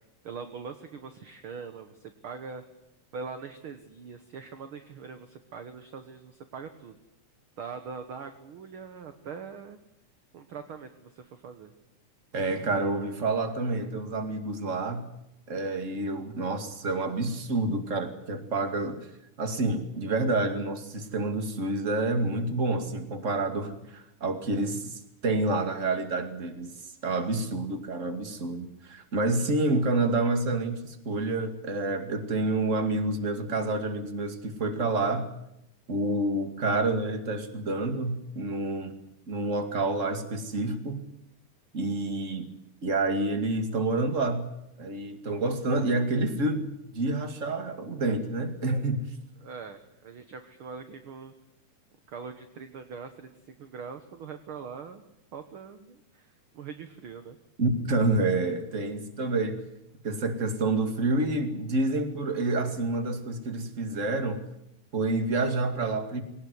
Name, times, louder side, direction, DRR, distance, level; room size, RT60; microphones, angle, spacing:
voice 1, 0.2-2.6 3.1-7.0 7.6-9.8 10.3-11.7 29.4-29.8 49.4-51.3 52.1-56.3 56.5-57.4, right 5 dB, 55° right, 8 dB, 1.7 m, -42 dB
voice 2, 12.3-15.1 15.5-19.1 19.4-26.7 27.0-35.3 35.9-39.0 39.3-41.0 41.7-42.5 42.8-44.5 44.8-49.1 57.6-59.6 60.0-64.4 64.9-66.2, right 2 dB, 25° right, 7 dB, 2.2 m, -28 dB
21.5 x 18.5 x 9.6 m, 0.82 s
omnidirectional pair, 3.7 m